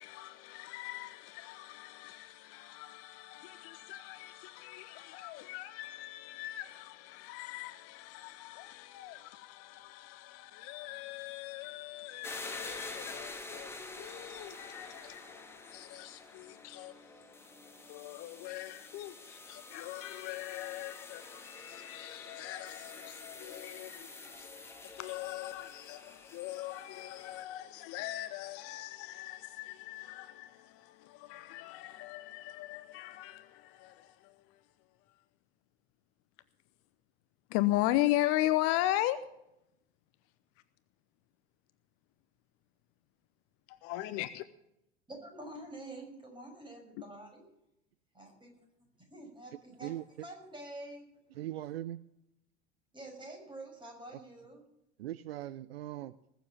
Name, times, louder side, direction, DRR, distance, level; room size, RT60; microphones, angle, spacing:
voice 1, 0.0-34.6 35.1-35.2 37.5-39.2 43.7-44.5, left 15 dB, 45° left, 0.8 m, -38 dB
sound 1, 12.2-27.4, left 3 dB, 5° left, 1.9 m, -48 dB
voice 2, 45.1-47.5 48.1-48.5 49.1-51.4 52.9-54.6, right 1 dB, 15° right, 6.3 m, -47 dB
voice 3, 51.4-52.0 55.0-56.2, right 13 dB, 65° right, 0.6 m, -39 dB
20.5 x 7.3 x 7.2 m
figure-of-eight pair, 75°, 33 cm